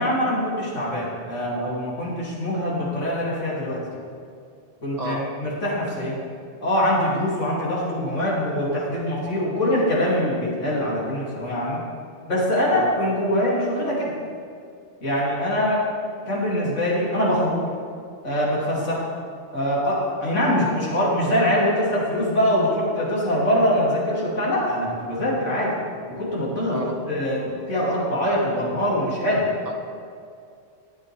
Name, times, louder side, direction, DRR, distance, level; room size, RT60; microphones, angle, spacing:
voice 1, 0.0-3.8 4.8-6.2 6.6-11.8 12.3-14.1 15.0-15.8 16.3-17.6 18.2-19.1 19.5-25.7 26.1-29.5, equal, 85° left, -6 dB, 3.0 m, -23 dB
voice 2, 5.0-5.3 12.7-12.9 26.7-27.0 29.6-29.8, right 1 dB, 35° right, 2 dB, 1.4 m, -31 dB
15.5 x 10.0 x 3.3 m, 2.4 s
omnidirectional pair, 1.2 m